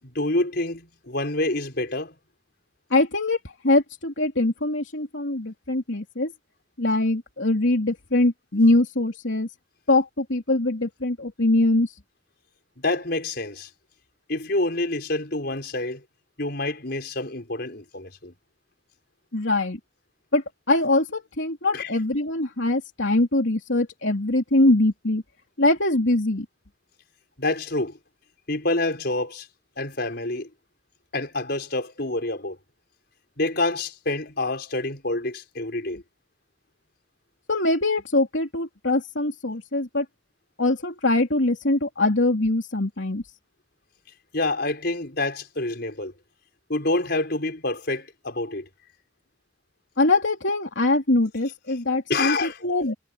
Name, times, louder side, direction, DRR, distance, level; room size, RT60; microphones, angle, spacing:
voice 1, 0.0-2.1 12.8-13.7 14.3-16.0 16.4-18.3 21.7-21.9 27.4-28.0 28.5-29.5 29.8-30.5 31.1-32.6 33.4-36.0 44.3-46.1 46.7-48.7 52.1-52.5, left 2 dB, 55° left, 5.2 m, -27 dB
voice 2, 2.9-6.3 6.8-9.5 9.9-11.9 19.3-19.8 20.3-25.2 25.6-26.4 37.5-40.0 40.6-43.2 50.0-52.9, left 2 dB, 75° left, 3.3 m, -23 dB
head